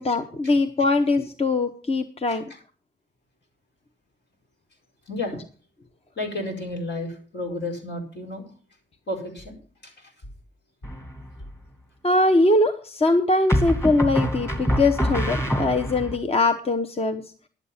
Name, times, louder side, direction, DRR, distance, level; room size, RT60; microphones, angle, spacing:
voice 1, 0.0-2.4 12.0-17.2, left 2 dB, 30° left, 8 dB, 0.9 m, -22 dB
voice 2, 5.1-5.4 6.2-8.5 9.1-9.6 9.8-10.1, left 2 dB, 65° left, 1 dB, 4.7 m, -32 dB
sound 1, 10.8-11.4 13.5-16.2, equal, 15° left, 2.4 m, -25 dB
11.5 x 8.1 x 5.6 m, 0.41 s
cardioid pair, 75°, 19 cm